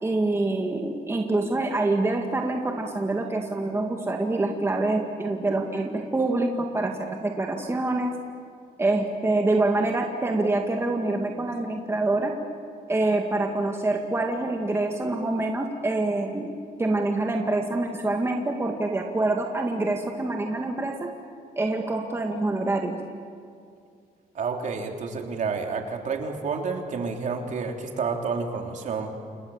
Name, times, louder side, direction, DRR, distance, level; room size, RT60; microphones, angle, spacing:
voice 1, 0.0-8.1 8.8-12.3 12.9-16.5 16.8-21.0 21.6-23.0, right 2 dB, 15° right, 2 dB, 2.0 m, -26 dB
voice 2, 24.4-29.1, right 5 dB, 50° right, 3 dB, 3.5 m, -29 dB
29.0 x 27.5 x 7.3 m, 2.3 s
cardioid pair, 130°, 16 cm